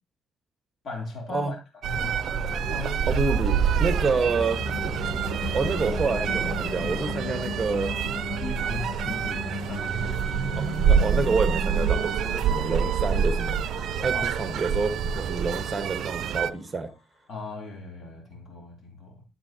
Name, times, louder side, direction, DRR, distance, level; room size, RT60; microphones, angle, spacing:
voice 1, 0.8-1.6 1.8-3.0 8.4-10.8 14.1-14.3 17.3-19.2, left 3 dB, 50° left, 3.1 m, -38 dB
sound 1, 1.8-16.5, right 7 dB, 70° right, 0.5 m, -27 dB
sound 2, 1.9-7.1, equal, 10° left, 1.0 m, -37 dB
voice 2, 3.0-4.6 5.5-7.9 9.0-9.2 10.5-13.6 14.0-16.9, right 4 dB, 25° right, 1.4 m, -28 dB
sound 3, 3.7-16.8, left 5 dB, 65° left, 1.9 m, -39 dB
13.0 x 7.6 x 2.9 m
cardioid pair, 110°, 0 cm